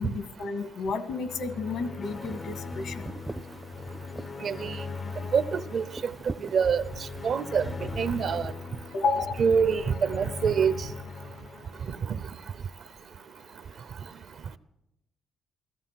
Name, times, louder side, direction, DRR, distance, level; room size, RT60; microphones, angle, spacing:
voice 1, 0.0-3.1 8.9-9.4, left 4 dB, 75° left, 1.5 m, -31 dB
sound 1, 1.2-12.5, left 4 dB, 40° left, 0.5 m, -40 dB
sound 2, 2.0-8.5, right 2 dB, 15° right, 0.5 m, -44 dB
voice 2, 4.4-4.8 5.3-6.1 6.5-6.8 7.2-7.6 8.0-8.5 9.4-10.9 12.1-12.2, right 6 dB, 60° right, 0.7 m, -25 dB
15.5 x 14.0 x 5.8 m
cardioid pair, 90°, 0 cm